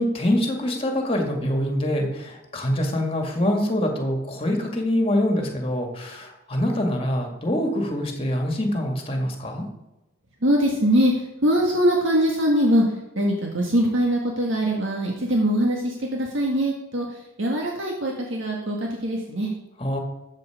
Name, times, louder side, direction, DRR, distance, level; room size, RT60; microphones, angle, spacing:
voice 1, 0.0-9.6 19.8-20.0, left 1 dB, 25° left, 3 dB, 2.0 m, -25 dB
voice 2, 10.4-19.5, equal, 65° right, -1 dB, 1.8 m, -22 dB
14.0 x 7.6 x 5.0 m, 0.97 s
head